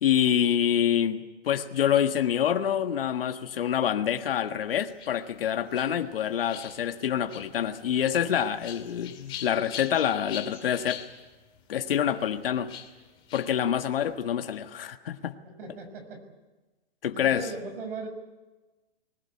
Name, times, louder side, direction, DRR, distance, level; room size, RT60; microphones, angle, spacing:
voice 1, 0.0-11.0 11.7-12.7 13.3-15.3 17.0-17.5, left 9 dB, 65° left, 1.7 m, -26 dB
sound 1, 4.7-14.1, left 9 dB, 15° left, 2.4 m, -45 dB
voice 2, 15.6-16.2 17.1-18.1, right 3 dB, 60° right, 6.2 m, -38 dB
20.5 x 19.5 x 9.8 m
hypercardioid pair, 165°, 31 cm